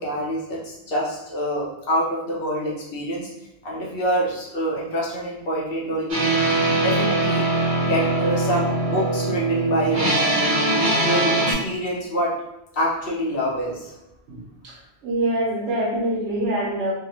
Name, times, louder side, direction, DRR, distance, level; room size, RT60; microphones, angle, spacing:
voice 1, 0.0-3.3 3.6-6.4 6.8-10.6 11.0-12.3 12.7-13.9, equal, 60° left, -5 dB, 0.8 m, -26 dB
sound 1, 6.1-11.5, right 2 dB, 55° right, 1.0 m, -21 dB
voice 2, 14.3-16.9, right 1 dB, 85° right, -2 dB, 1.0 m, -25 dB
2.6 x 2.1 x 2.8 m, 0.87 s
omnidirectional pair, 1.2 m